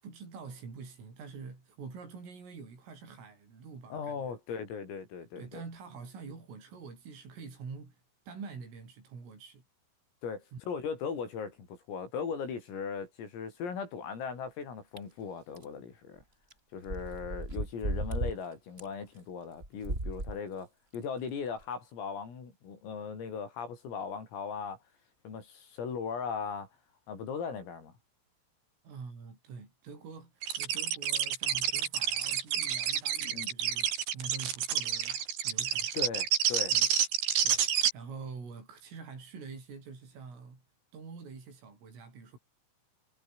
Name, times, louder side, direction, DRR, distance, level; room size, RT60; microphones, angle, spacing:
voice 1, 0.0-4.4 5.4-8.0 8.3-9.6 10.5-10.6 28.8-36.1 36.7-36.9 37.4-40.6 40.9-42.4, right 5 dB, 75° right, 11.0 m, -46 dB
voice 2, 3.9-5.6 10.2-16.2 16.7-20.7 20.9-24.8 25.3-26.7 27.1-27.9 33.2-33.5 35.9-36.7, left 6 dB, 80° left, 9.0 m, -38 dB
sound 1, 15.0-15.1 15.6-15.7 16.5-16.6 16.9-18.4 18.8-18.9 19.6-20.4 20.9-21.0 21.6-21.7, right 2 dB, 10° right, 4.6 m, -34 dB
sound 2, 30.4-37.9, right 9 dB, 60° right, 4.4 m, -29 dB
omnidirectional pair, 5.9 m